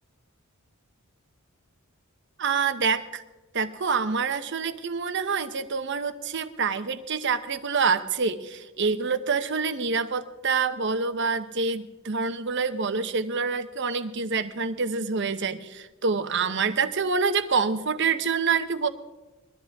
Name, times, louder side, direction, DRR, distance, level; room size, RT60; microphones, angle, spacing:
voice 1, 2.4-3.2 3.5-18.9, right 5 dB, 55° right, 10 dB, 0.8 m, -26 dB
21.5 x 13.0 x 3.6 m, 1.1 s
head